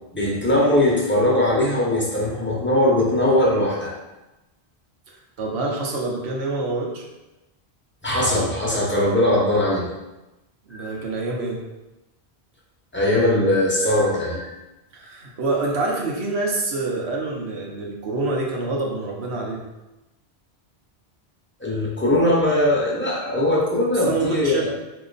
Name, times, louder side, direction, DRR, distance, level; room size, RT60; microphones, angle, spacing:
voice 1, 0.1-3.9 8.0-9.9 10.7-10.9 12.9-14.5 21.6-24.5, left 1 dB, 10° left, -4 dB, 0.9 m, -20 dB
voice 2, 5.4-7.0 10.7-11.6 14.9-19.6 24.1-24.7, right 2 dB, 75° right, -1 dB, 1.1 m, -26 dB
4.2 x 2.9 x 4.0 m, 1.0 s
omnidirectional pair, 1.1 m